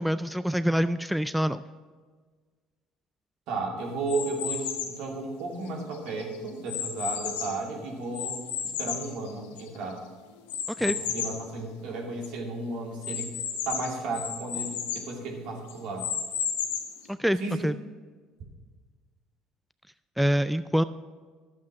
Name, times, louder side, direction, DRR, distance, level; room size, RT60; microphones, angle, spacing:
voice 1, 0.0-1.6 10.7-11.0 17.1-17.7 20.2-20.8, equal, ahead, 13 dB, 0.3 m, -25 dB
voice 2, 3.5-8.4 8.6-10.0 10.9-13.3 13.6-16.1 17.4-17.7, right 3 dB, 65° right, 0 dB, 2.6 m, -34 dB
sound 1, 4.1-5.0 5.7-7.7 8.1-9.8 10.5-11.4 11.9-12.0 12.2-12.3 13.0-15.1 15.7-17.0, left 8 dB, 80° left, 1.3 m, -33 dB
11.5 x 7.4 x 6.2 m, 1.5 s
hypercardioid pair, 70°, 0 cm